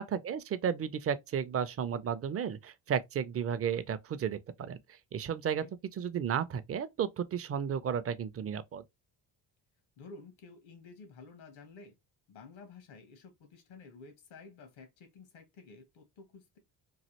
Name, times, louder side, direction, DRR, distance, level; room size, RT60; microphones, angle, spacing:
voice 1, 0.0-5.6 6.0-8.8, right 8 dB, 30° right, 0.4 m, -33 dB
voice 2, 10.0-11.9 12.3-16.6, left 4 dB, 80° left, 1.2 m, -52 dB
3.1 x 2.4 x 2.8 m
supercardioid pair, 65°, 47 cm